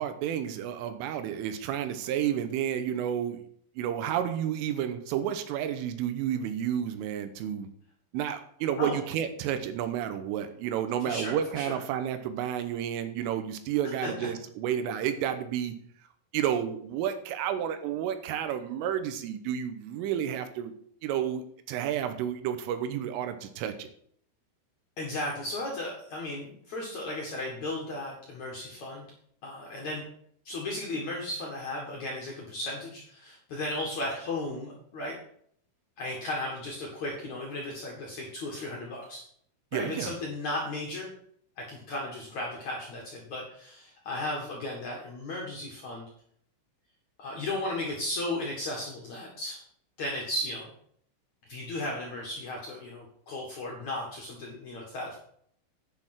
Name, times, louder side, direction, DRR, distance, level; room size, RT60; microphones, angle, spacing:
voice 1, 0.0-3.4 3.8-7.7 8.1-15.8 16.3-20.7 21.0-23.9 39.7-40.1, right 9 dB, 80° right, 9 dB, 3.4 m, -31 dB
voice 2, 11.0-11.8 14.0-14.3 25.0-29.1 29.4-30.0 30.5-35.2 36.0-39.3 39.7-41.1 41.6-46.1 47.2-49.6 50.0-50.7 51.5-55.2, left 1 dB, 55° left, -2 dB, 2.1 m, -35 dB
10.5 x 6.5 x 6.0 m, 0.64 s
omnidirectional pair, 5.8 m